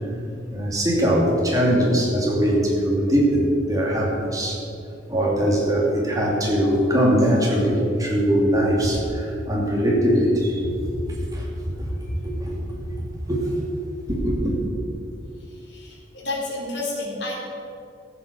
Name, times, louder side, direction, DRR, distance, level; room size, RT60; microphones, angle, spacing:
voice 1, 0.5-4.6 5.1-11.5 11.8-12.8 13.3-13.6 14.1-14.6, equal, 20° right, -3 dB, 2.7 m, -21 dB
voice 2, 15.4-17.4, left 2 dB, 75° left, -2 dB, 3.4 m, -31 dB
14.0 x 7.7 x 6.9 m, 2.6 s
head